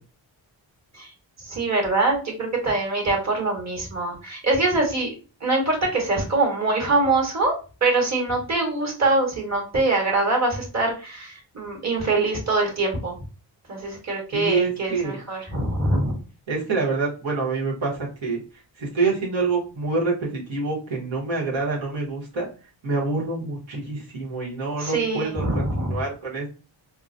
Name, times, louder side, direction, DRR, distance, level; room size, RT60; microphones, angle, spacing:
voice 1, 1.4-5.1 5.4-7.5 7.8-13.2 13.7-16.2 24.8-26.0, right 2 dB, 35° right, 0 dB, 1.4 m, -23 dB
voice 2, 14.3-15.2 16.5-18.4 18.8-22.5 22.8-26.5, right 3 dB, 85° right, -4 dB, 1.3 m, -26 dB
3.7 x 2.1 x 2.6 m, 0.34 s
cardioid pair, 70°, 45 cm